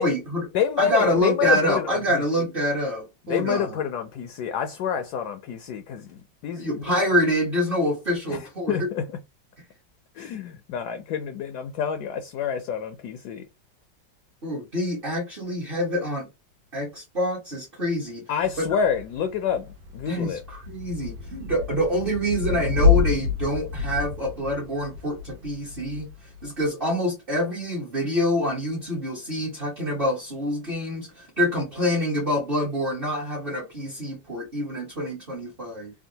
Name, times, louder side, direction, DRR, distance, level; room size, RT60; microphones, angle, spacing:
voice 1, 0.0-0.4 0.8-3.8 6.6-8.9 14.4-16.3 16.7-18.2 18.6-18.8 20.1-26.1 26.4-35.9, equal, 40° right, 0.9 m, -26 dB
voice 2, 0.5-2.5 3.3-7.0 8.3-9.2 10.2-13.4 18.3-20.4, left 8 dB, 75° left, 1.0 m, -28 dB
Thunder / Rain, 18.4-26.7, left 5 dB, 85° right, 1.4 m, -28 dB
3.6 x 2.2 x 2.7 m
omnidirectional pair, 2.0 m